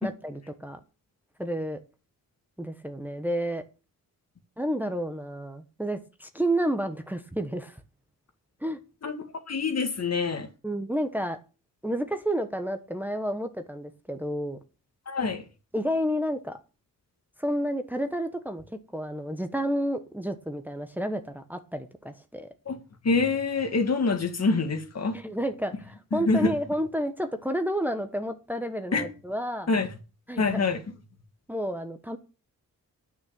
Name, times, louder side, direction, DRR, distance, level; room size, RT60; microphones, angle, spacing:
voice 1, 0.0-0.8 1.4-1.8 2.6-3.6 4.6-7.8 8.6-8.8 10.6-11.4 11.8-14.6 15.7-16.6 17.4-18.6 18.9-22.5 25.1-29.7 30.3-30.6 31.5-32.2, equal, 5° right, 1.1 m, -30 dB
voice 2, 9.0-10.5 15.1-15.4 22.7-22.8 23.0-25.2 26.1-26.5 28.9-29.1 29.7-29.9 30.4-30.8, left 4 dB, 45° left, 1.9 m, -26 dB
9.6 x 6.2 x 8.7 m
wide cardioid pair, 120°, 35 cm